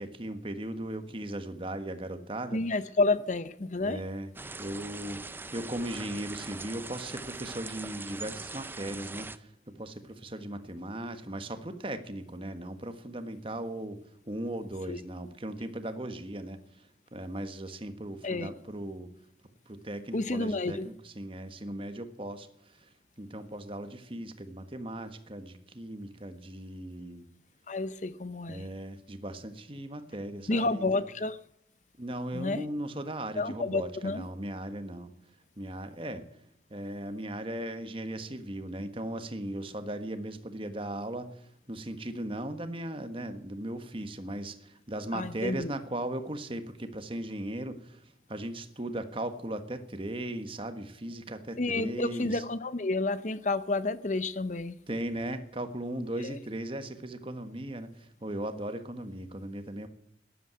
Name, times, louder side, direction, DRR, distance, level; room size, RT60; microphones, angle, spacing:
voice 1, 0.0-2.6 3.8-4.3 4.6-14.0 14.3-16.9 17.1-19.1 19.7-22.9 23.2-27.2 28.5-31.0 32.0-35.1 35.6-36.2 36.7-52.4 54.9-59.9, right 1 dB, 30° right, 1.5 m, -38 dB
voice 2, 2.5-4.0 14.9-15.0 18.2-18.5 20.1-20.9 27.7-28.7 30.5-31.4 32.3-32.6 33.4-34.3 45.1-45.7 51.6-54.8 56.2-56.4, left 2 dB, 40° left, 0.8 m, -30 dB
sound 1, 4.3-9.4, right 3 dB, 10° right, 0.5 m, -42 dB
13.5 x 11.0 x 9.5 m
head